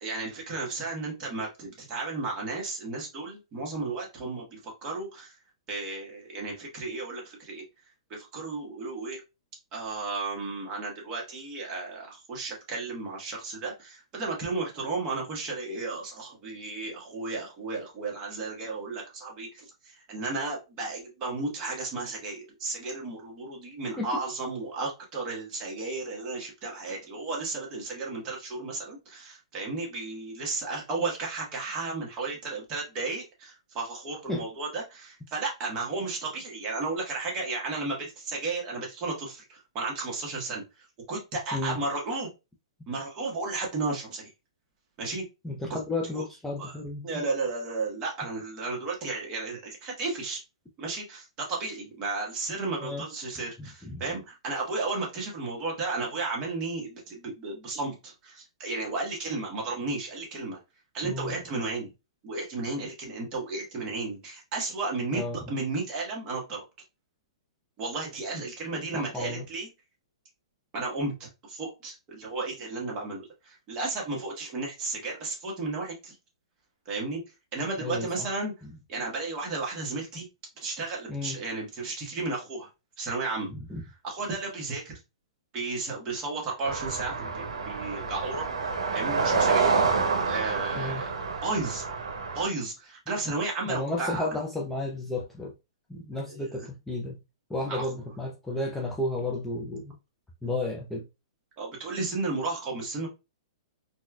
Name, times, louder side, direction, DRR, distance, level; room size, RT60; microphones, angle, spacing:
voice 1, 0.0-5.4 5.7-7.6 8.1-9.2 9.7-42.3 42.9-44.3 45.0-45.2 46.1-46.2 46.6-46.8 47.0-50.4 50.8-60.6 60.9-61.9 62.2-65.2 65.5-66.6 67.8-69.7 70.7-76.1 76.8-77.2 77.5-78.5 78.9-80.3 80.6-82.7 83.0-83.5 84.0-84.9 85.5-88.5 88.9-89.7 90.2-91.1 91.4-91.8 92.3-94.2 96.3-96.7 97.6-97.9 101.6-103.1, right 3 dB, 30° right, 1.3 m, -33 dB
voice 2, 45.4-47.2 52.8-53.0 53.6-54.0 61.0-61.4 65.1-65.5 68.9-69.4 77.8-78.3 78.6-78.7 81.1-81.4 83.5-83.8 90.7-91.0 93.7-95.5 95.9-97.2 97.5-99.9 100.4-101.0, left 2 dB, 5° left, 0.5 m, -33 dB
sound 1, 86.6-92.5, right 5 dB, 90° right, 0.7 m, -28 dB
4.2 x 2.3 x 2.3 m
hypercardioid pair, 140°, 3 cm